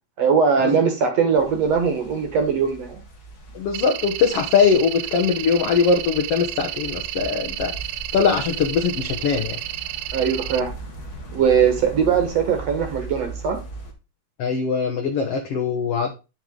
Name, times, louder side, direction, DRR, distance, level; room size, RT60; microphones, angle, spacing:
voice 1, 0.2-3.0 10.1-10.7 11.3-13.6, right 6 dB, 60° right, 5 dB, 2.0 m, -20 dB
sound 1, 1.4-13.9, right 2 dB, 55° left, 1.0 m, -39 dB
voice 2, 3.5-7.7 8.1-9.6 14.4-16.1, left 6 dB, 85° left, 3 dB, 1.3 m, -21 dB
sound 2, 3.7-10.6, right 14 dB, 80° right, 1.9 m, -32 dB
10.5 x 5.9 x 3.8 m, 0.29 s
omnidirectional pair, 4.2 m